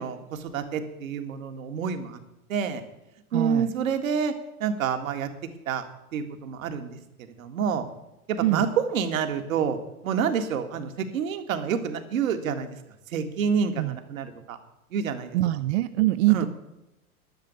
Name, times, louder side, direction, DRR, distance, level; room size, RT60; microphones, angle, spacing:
voice 1, 0.0-2.2 2.5-2.8 3.3-4.3 4.6-5.3 5.7-5.8 6.1-7.8 8.3-9.8 10.0-12.8 13.1-14.6 14.9-15.4 16.3-16.5, right 7 dB, 65° right, 7 dB, 1.9 m, -28 dB
voice 2, 3.3-3.7 8.4-8.6 13.8-14.0 15.3-16.5, right 17 dB, 50° right, 13 dB, 0.5 m, -23 dB
11.5 x 7.1 x 9.0 m, 0.92 s
figure-of-eight pair, 95°, 44 cm